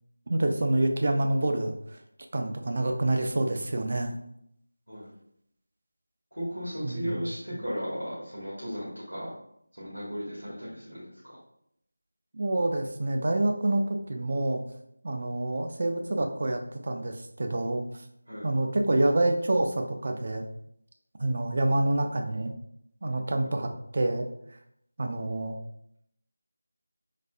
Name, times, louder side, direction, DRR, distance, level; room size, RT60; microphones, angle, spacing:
voice 1, 0.3-1.7 2.3-4.1 6.8-7.6 12.3-14.6 15.0-17.8 18.4-20.4 21.2-22.5 23.0-24.3 25.0-25.6, right 2 dB, 40° right, 5 dB, 0.3 m, -27 dB
voice 2, 6.3-9.3 9.7-11.4 18.3-18.5 23.4-23.5, equal, 85° right, -8 dB, 1.3 m, -36 dB
4.0 x 2.4 x 2.3 m, 0.74 s
figure-of-eight pair, 165°, 0 cm